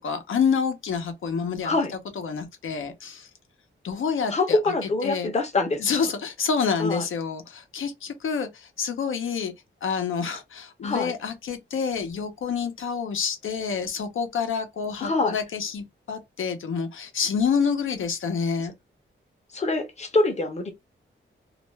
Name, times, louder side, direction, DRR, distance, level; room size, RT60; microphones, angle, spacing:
voice 1, 0.0-1.7 2.2-3.3 3.8-5.3 5.8-9.5 9.8-18.7, left 6 dB, 80° left, 0.7 m, -28 dB
voice 2, 4.3-5.8 6.8-7.0 10.8-11.1 15.0-15.4 19.5-20.7, left 2 dB, 35° left, 0.7 m, -24 dB
2.4 x 2.2 x 3.1 m
wide cardioid pair, 170°, 21 cm